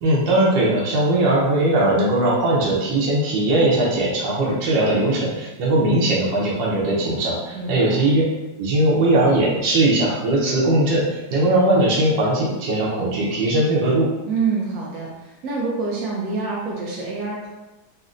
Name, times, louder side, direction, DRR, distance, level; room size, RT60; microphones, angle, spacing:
voice 1, 0.0-8.2 8.6-14.1, right 1 dB, 85° right, -5 dB, 1.5 m, -19 dB
voice 2, 7.5-8.0 14.3-17.5, right 4 dB, 70° right, -4 dB, 0.8 m, -26 dB
4.0 x 2.1 x 2.4 m, 1.0 s
omnidirectional pair, 1.9 m